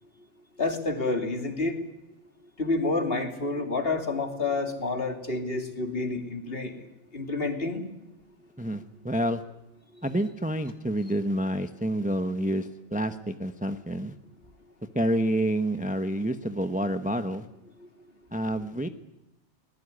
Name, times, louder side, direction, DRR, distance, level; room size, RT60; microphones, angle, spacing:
voice 1, 0.6-1.8 2.6-6.9 7.1-7.8 9.9-10.0 17.8-17.9, left 3 dB, 45° left, 5 dB, 3.1 m, -29 dB
voice 2, 8.6-9.4 10.0-14.1 14.9-17.5 18.3-18.9, right 1 dB, 5° right, 9 dB, 0.9 m, -28 dB
24.0 x 20.0 x 9.8 m, 0.90 s
omnidirectional pair, 1.3 m